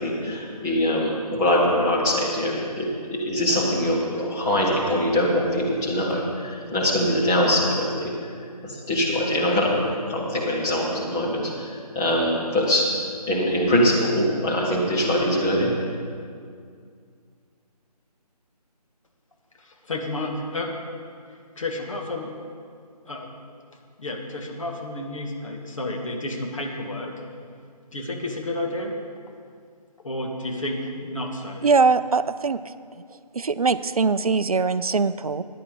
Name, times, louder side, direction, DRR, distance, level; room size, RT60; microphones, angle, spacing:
voice 1, 0.0-8.1 8.6-11.7 11.9-12.9 13.3-15.7, left 1 dB, 5° left, -6 dB, 0.5 m, -23 dB
voice 2, 19.6-20.7 21.6-22.3 23.0-23.3 24.0-27.1 27.9-29.0 30.0-31.7, left 1 dB, 50° left, 2 dB, 1.6 m, -31 dB
voice 3, 31.6-32.6 33.3-35.4, right 4 dB, 65° right, 14 dB, 0.4 m, -21 dB
14.0 x 10.0 x 3.9 m, 2.2 s
figure-of-eight pair, 150°, 21 cm